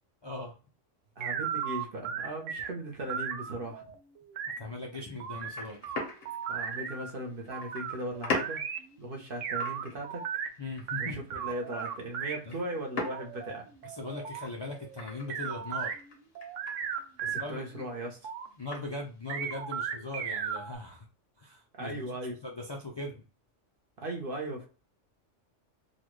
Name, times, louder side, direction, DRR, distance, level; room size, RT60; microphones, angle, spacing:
voice 1, 0.2-0.5 4.6-5.8 10.6-11.2 12.4-12.6 13.8-15.9 17.3-17.8 18.6-21.1 21.4-22.0 22.4-23.2, left 2 dB, 35° left, -1 dB, 0.4 m, -39 dB
voice 2, 1.2-3.9 6.5-8.6 9.0-10.2 11.0-13.7 16.8-18.2 21.7-22.4 24.0-24.7, right 1 dB, 50° right, 1 dB, 1.0 m, -38 dB
sound 1, 1.2-2.7 3.1-4.6 5.2-7.1 7.5-8.8 9.4-10.5 10.9-12.4 13.0-16.0 16.3-17.4 17.8-18.5 19.3-20.7, right 7 dB, 85° right, 1.0 m, -36 dB
sound 2, 5.1-19.6, left 3 dB, 90° left, 1.5 m, -43 dB
3.9 x 2.3 x 3.0 m, 0.34 s
omnidirectional pair, 1.2 m